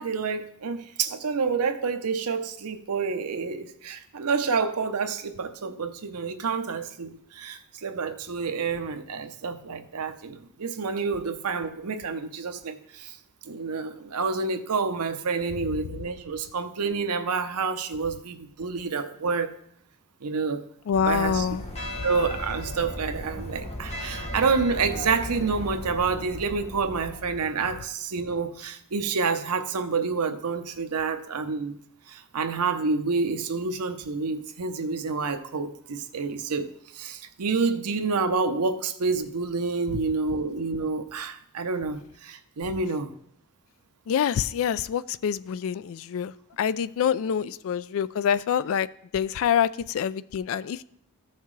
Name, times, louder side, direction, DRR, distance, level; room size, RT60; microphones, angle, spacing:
voice 1, 0.0-13.2 13.4-19.5 20.2-20.6 21.1-21.5 22.0-31.7 32.1-43.1, right 4 dB, 90° right, 0.7 m, -28 dB
voice 2, 20.9-21.6 44.1-48.9 49.1-50.8, left 8 dB, 65° left, 0.3 m, -26 dB
sound 1, 20.9-27.4, left 1 dB, 30° left, 0.9 m, -36 dB
14.5 x 5.7 x 3.2 m
head